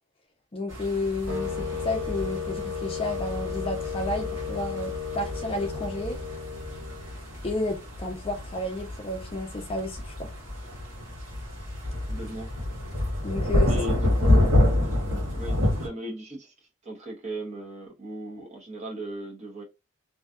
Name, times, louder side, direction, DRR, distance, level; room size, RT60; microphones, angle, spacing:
voice 1, 0.5-6.2 7.4-10.3 13.2-13.7 14.2-14.5, left 2 dB, 25° left, 0.4 m, -31 dB
sound 1, 0.7-15.9, left 1 dB, 65° right, 1.4 m, -28 dB
sound 2, 1.3-7.4, left 5 dB, 80° right, 1.3 m, -34 dB
voice 2, 12.1-12.5 13.7-14.5 14.8-15.1 15.3-16.5 16.8-19.6, right 1 dB, 30° right, 0.7 m, -38 dB
2.6 x 2.2 x 2.4 m
head